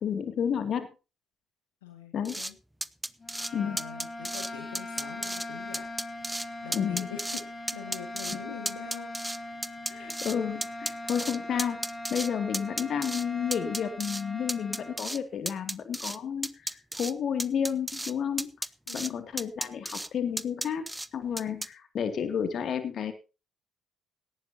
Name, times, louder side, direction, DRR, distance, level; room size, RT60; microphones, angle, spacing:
voice 1, 0.0-0.9 2.1-2.3 3.5-3.8 6.7-7.1 9.9-11.8 12.1-18.5 18.9-20.9 21.1-23.1, left 8 dB, 50° left, 9 dB, 2.5 m, -31 dB
voice 2, 1.8-2.6 3.5-5.9 6.3-7.4 7.7-9.1 9.8-10.1 18.9-19.3, left 9 dB, 75° left, 5 dB, 1.9 m, -44 dB
sound 1, 2.2-2.5 2.8-3.5 3.8-4.5 4.7-5.5 5.7-6.5 6.7-7.4 7.7-8.4 8.6-10.4 10.6-12.3 12.5-13.2 13.5-14.2 14.5-15.2 15.5-16.2 16.4-17.1 17.4-18.1 18.4-19.1 19.4-20.1 20.4-21.1 21.4-21.7, right 1 dB, 10° right, 0.9 m, -33 dB
sound 2, 3.2-15.0, left 1 dB, 30° left, 2.7 m, -40 dB
18.0 x 14.5 x 2.9 m, 0.32 s
figure-of-eight pair, 45°, 0 cm